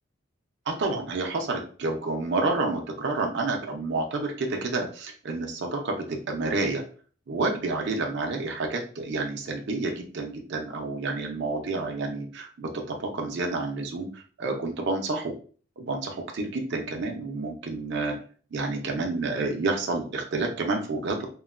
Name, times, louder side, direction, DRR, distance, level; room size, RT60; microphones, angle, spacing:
voice 1, 0.7-6.8 7.3-15.3 15.8-18.1 18.5-21.3, right 3 dB, 60° right, 2 dB, 0.5 m, -29 dB
3.0 x 2.1 x 2.3 m, 0.41 s
head